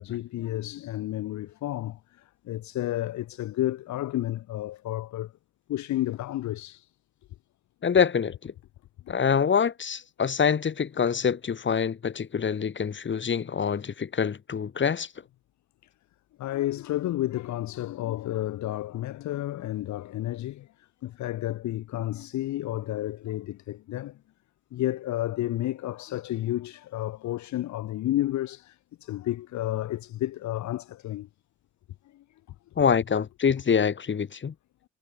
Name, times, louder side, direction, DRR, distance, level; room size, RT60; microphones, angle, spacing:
voice 1, 0.0-5.3 5.7-6.9 9.1-9.2 16.4-24.2 24.7-31.3 32.1-32.2, left 14 dB, 70° left, 0.8 m, -31 dB
voice 2, 7.8-8.5 9.1-15.1 32.8-34.5, left 7 dB, 40° left, 1.8 m, -25 dB
cardioid pair, 90°, 30 cm